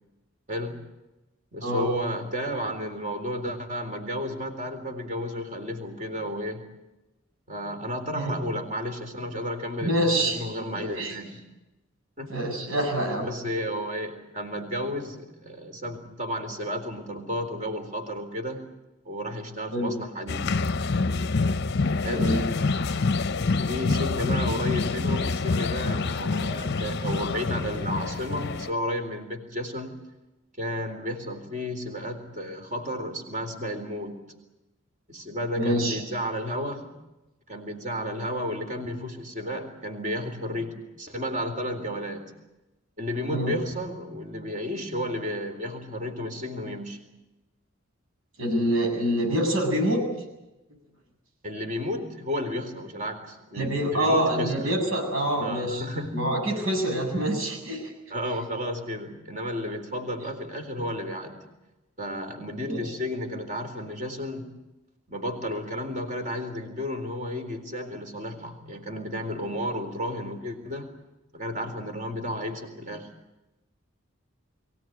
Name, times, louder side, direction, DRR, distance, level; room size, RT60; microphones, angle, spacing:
voice 1, 0.5-0.8 1.5-6.7 7.5-11.4 12.2-12.4 13.2-18.7 19.1-20.5 22.0-22.4 23.7-30.0 30.6-34.2 35.1-37.0 37.5-42.3 43.0-47.0 51.4-54.7 55.4-56.3 57.2-57.3 58.1-61.4 62.0-64.6 65.1-70.9 71.3-73.1, equal, 35° right, 5 dB, 3.9 m, -32 dB
voice 2, 9.8-10.4 10.8-11.2 12.3-13.3 19.7-19.9 22.1-22.4 35.6-36.0 43.3-43.6 48.4-50.0 53.6-55.8 56.1-57.9 62.6-62.8, equal, 80° right, 1 dB, 7.8 m, -26 dB
sound 1, 20.3-28.7, left 3 dB, 55° left, 0.7 m, -26 dB
23.0 x 17.0 x 9.4 m, 1.0 s
head